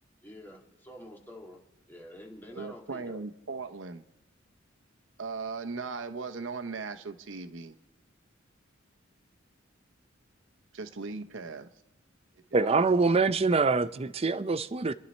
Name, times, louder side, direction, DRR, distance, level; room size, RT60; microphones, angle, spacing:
voice 1, 0.2-1.6 1.9-3.2, equal, 10° left, 1.8 m, -47 dB
voice 2, 2.5-4.0 5.2-7.7 10.7-11.7 12.5-13.1, right 4 dB, 70° right, 0.8 m, -38 dB
voice 3, 12.5-14.9, right 4 dB, 30° right, 0.5 m, -25 dB
28.0 x 10.5 x 4.3 m
head